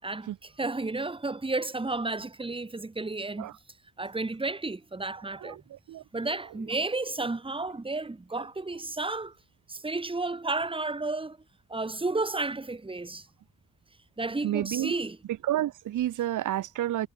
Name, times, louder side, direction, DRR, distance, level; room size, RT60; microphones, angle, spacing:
voice 1, 0.0-3.5 4.0-5.6 6.1-9.3 9.7-11.4 11.7-13.3 14.2-15.2, right 3 dB, 15° right, 5.5 m, -32 dB
voice 2, 14.4-14.9 15.5-17.1, right 13 dB, 60° right, 0.7 m, -29 dB
wide cardioid pair, 170°, 35 cm